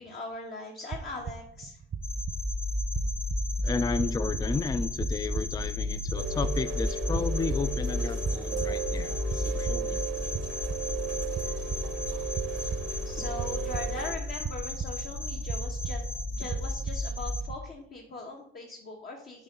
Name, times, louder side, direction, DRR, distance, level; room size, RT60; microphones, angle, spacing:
voice 1, 0.0-1.8 13.0-16.0 16.3-19.4, left 2 dB, 50° left, 0 dB, 1.3 m, -40 dB
sound 1, 0.9-17.5, right 6 dB, 35° right, 0.5 m, -40 dB
sound 2, 2.0-17.5, left 2 dB, 85° left, 2.4 m, -33 dB
voice 2, 3.6-10.0, left 4 dB, 20° left, 11 dB, 0.4 m, -33 dB
Rain, 6.2-14.1, right 6 dB, 85° right, 0.9 m, -36 dB
8.1 x 3.3 x 5.3 m, 0.72 s
cardioid pair, 90°, 20 cm